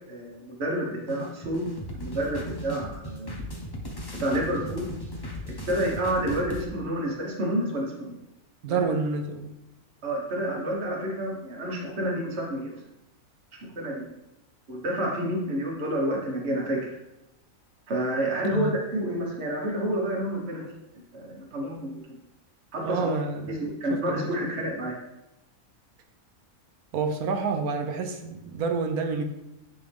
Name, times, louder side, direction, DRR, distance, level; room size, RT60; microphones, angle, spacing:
voice 1, 0.1-1.6 1.9-3.4 4.2-4.9 5.4-8.1 8.7-8.9 10.0-12.7 13.7-14.0 14.7-17.0 17.9-20.6 20.9-22.2 22.7-23.1 23.5-25.0, right 1 dB, 50° right, -2 dB, 1.6 m, -29 dB
sound 1, 1.1-6.6, equal, 20° left, 0.6 m, -37 dB
voice 2, 8.6-9.5 18.5-18.8 22.8-23.5 23.9-24.3 26.9-29.2, right 4 dB, 90° right, 5 dB, 1.3 m, -28 dB
9.6 x 3.5 x 3.5 m, 0.91 s
omnidirectional pair, 1.5 m